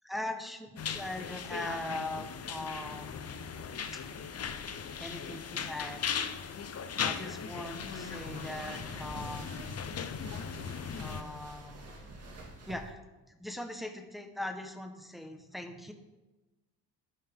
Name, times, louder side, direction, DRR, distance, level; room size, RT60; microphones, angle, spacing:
voice 1, 0.0-3.3 3.9-4.0 5.0-6.0 7.0-9.5 11.0-11.9 12.7-13.0 13.4-15.9, left 1 dB, ahead, 5 dB, 1.2 m, -40 dB
sound 1, 0.8-11.2, left 7 dB, 35° left, 0.8 m, -38 dB
sound 2, 1.1-6.0, left 3 dB, 90° left, 3.3 m, -56 dB
sound 3, 7.6-12.9, right 2 dB, 35° right, 2.0 m, -48 dB
12.0 x 11.0 x 3.7 m, 1.1 s
cardioid pair, 100°, 43 cm